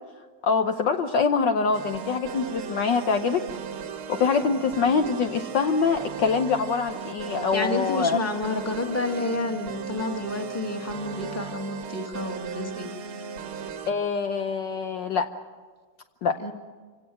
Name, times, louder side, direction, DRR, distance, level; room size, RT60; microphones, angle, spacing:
voice 1, 0.4-3.4 4.1-8.2 13.9-15.3 16.2-16.4, left 5 dB, 65° left, 6 dB, 1.4 m, -24 dB
sound 1, 1.7-13.9, right 6 dB, 75° right, 2.0 m, -37 dB
voice 2, 7.5-12.9 16.4-16.5, left 2 dB, 5° left, 3 dB, 1.7 m, -30 dB
27.0 x 17.5 x 7.8 m, 1.4 s
omnidirectional pair, 2.4 m